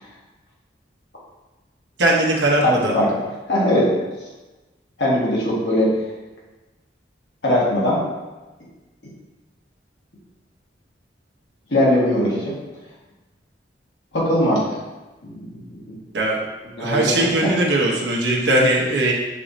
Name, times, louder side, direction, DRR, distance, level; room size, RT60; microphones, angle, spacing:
voice 1, 2.0-3.0 16.1-16.4 16.8-19.1, right 1 dB, 80° right, -2 dB, 0.8 m, -19 dB
voice 2, 2.6-3.1 3.5-3.9 5.0-5.9 7.4-8.0 11.7-12.5 14.1-14.7 15.2-16.0 16.8-17.5, left 1 dB, 80° left, -6 dB, 1.5 m, -20 dB
6.1 x 3.0 x 2.6 m, 1.1 s
head